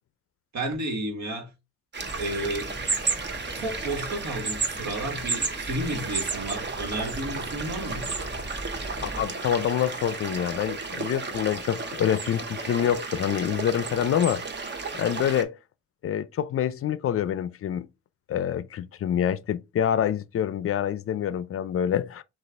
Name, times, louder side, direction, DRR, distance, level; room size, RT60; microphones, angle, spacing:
voice 1, 0.5-1.5 2.2-2.7 3.5-8.1, right 1 dB, 65° right, 1.5 m, -32 dB
sound 1, 1.9-15.4, right 4 dB, 35° right, 0.9 m, -33 dB
sound 2, 2.0-9.2, equal, 5° right, 1.5 m, -41 dB
voice 2, 9.0-14.4 14.9-15.6 16.0-17.9 18.3-22.2, left 9 dB, 50° left, 0.5 m, -26 dB
6.3 x 2.5 x 3.4 m
cardioid pair, 90°, 30 cm